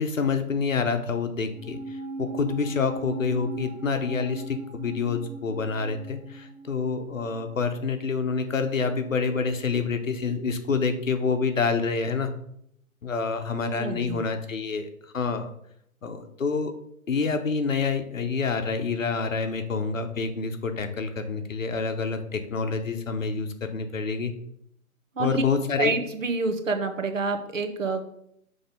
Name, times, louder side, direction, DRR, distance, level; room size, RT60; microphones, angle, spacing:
voice 1, 0.0-12.3 13.0-14.9 15.1-15.5 16.0-16.7 17.1-24.3 25.2-26.0, left 5 dB, 65° left, 7 dB, 1.0 m, -27 dB
sound 1, 1.5-8.1 8.3-8.4, right 2 dB, 10° right, 1.8 m, -39 dB
voice 2, 13.7-14.2 25.2-25.4 25.8-28.0, right 3 dB, 60° right, 6 dB, 1.1 m, -28 dB
6.7 x 3.4 x 5.2 m, 0.72 s
hypercardioid pair, 170°, 43 cm